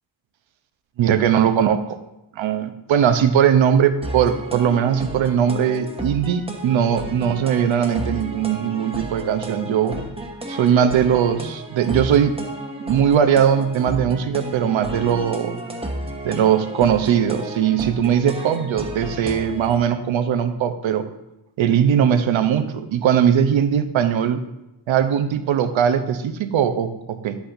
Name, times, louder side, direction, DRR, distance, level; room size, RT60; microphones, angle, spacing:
voice 1, 1.0-2.0 2.4-10.0 10.5-12.3 12.8-15.6 16.2-21.1 21.6-24.4 24.9-27.4, right 8 dB, 75° right, 9 dB, 0.8 m, -19 dB
sound 1, 4.0-19.8, right 1 dB, 10° right, 1.1 m, -33 dB
9.9 x 8.2 x 2.6 m, 0.92 s
cardioid pair, 90°, 47 cm